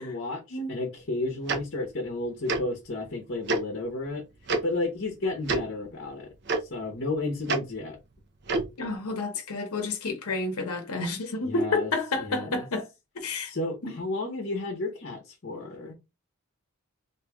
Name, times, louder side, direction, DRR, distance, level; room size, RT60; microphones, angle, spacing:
voice 1, 0.0-4.2 4.6-6.3 6.6-8.0 11.4-11.9 12.2-12.7 13.4-16.0, left 2 dB, 50° left, 0.9 m, -32 dB
Tick-tock, 1.5-1.6 2.5-2.6 3.5-3.6 4.5-4.6 5.4-5.6 6.5-6.6 7.5-7.6 8.5-8.7, right 3 dB, 50° right, 0.7 m, -26 dB
voice 2, 8.8-12.9 13.1-13.5 13.8-14.0, left 3 dB, 85° left, 0.8 m, -30 dB
3.0 x 2.7 x 3.5 m
head